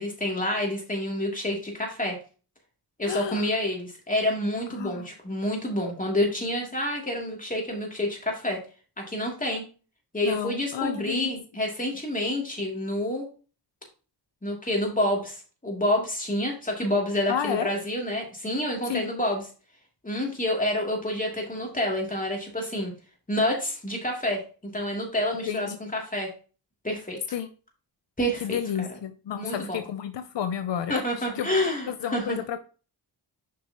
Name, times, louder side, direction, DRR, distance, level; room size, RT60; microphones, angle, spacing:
voice 1, 0.0-2.2 3.0-8.6 9.0-9.6 10.1-13.3 14.4-19.4 20.0-22.9 23.3-26.3 26.8-27.2 28.2-28.9 29.3-29.8 30.9-32.4, left 1 dB, 20° left, 0 dB, 2.9 m, -28 dB
voice 2, 3.0-3.5 4.8-5.1 10.2-11.3 17.3-17.7 18.9-19.1 25.5-25.8 27.3-27.5 28.4-31.0 31.4-31.5 31.9-32.6, left 9 dB, 80° left, 10 dB, 0.6 m, -31 dB
7.5 x 5.3 x 3.0 m, 0.36 s
cardioid pair, 60°, 42 cm